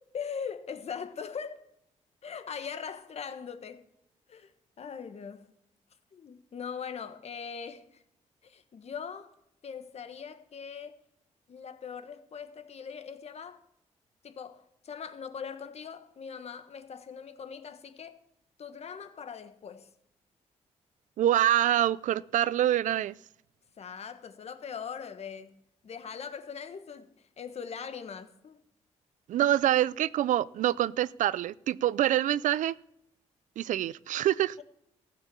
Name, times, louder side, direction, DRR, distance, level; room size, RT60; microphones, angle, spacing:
voice 1, 0.0-1.6 2.2-3.8 4.3-4.5 4.8-5.5 6.1-8.0 8.4-9.3 9.6-10.9 11.5-13.6 14.2-18.2 18.6-19.9 23.8-28.6, left 6 dB, 55° left, 1.3 m, -41 dB
voice 2, 21.2-23.1 29.3-32.8 33.6-34.6, right 12 dB, 80° right, 0.4 m, -26 dB
14.5 x 7.2 x 6.9 m
cardioid pair, 90°, 13 cm